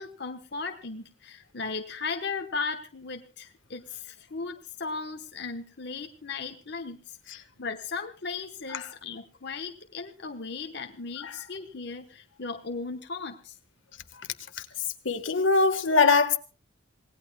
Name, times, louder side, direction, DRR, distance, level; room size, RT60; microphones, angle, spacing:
voice 1, 0.0-13.5, left 4 dB, 60° left, 1.1 m, -36 dB
voice 2, 15.0-16.4, left 4 dB, 85° left, 1.4 m, -22 dB
27.5 x 18.5 x 2.3 m
head